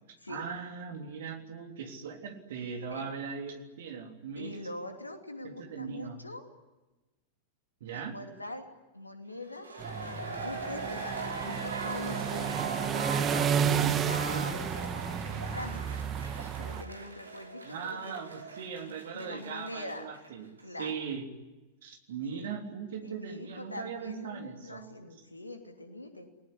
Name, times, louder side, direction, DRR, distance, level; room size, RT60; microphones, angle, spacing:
voice 1, 0.3-4.6 5.4-6.2 7.8-8.1 13.6-14.5 17.6-21.3 21.8-24.9, right 6 dB, 60° right, 4 dB, 3.4 m, -39 dB
voice 2, 4.4-6.4 7.9-8.7 8.9-9.8 10.1-12.5 12.9-16.1 16.6-18.1 18.9-20.1 20.6-20.9 22.3-22.5 23.0-26.3, left 2 dB, 85° left, 6 dB, 2.9 m, -43 dB
sound 1, 9.4-20.3 20.6-20.7, right 3 dB, 75° right, 3.3 m, -40 dB
sound 2, 9.8-16.8, right 8 dB, 25° right, 1.5 m, -32 dB
30.0 x 19.0 x 9.9 m, 1.1 s
figure-of-eight pair, 90°, 0 cm